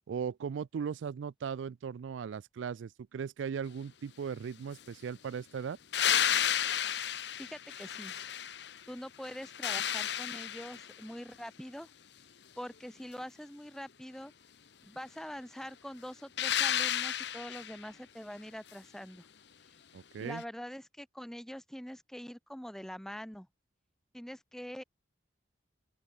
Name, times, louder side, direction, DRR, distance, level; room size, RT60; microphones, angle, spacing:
voice 1, 0.1-5.8 19.9-20.4, right 6 dB, 85° right, 0.4 m, -38 dB
sound 1, 5.9-8.8 9.2-11.0 16.4-17.8 20.4-20.5, left 10 dB, 65° left, 0.9 m, -32 dB
voice 2, 7.4-8.2 8.9-11.9 12.6-14.3 14.8-19.3 20.2-23.5 24.1-24.8, equal, ahead, 0.5 m, -44 dB
open air
head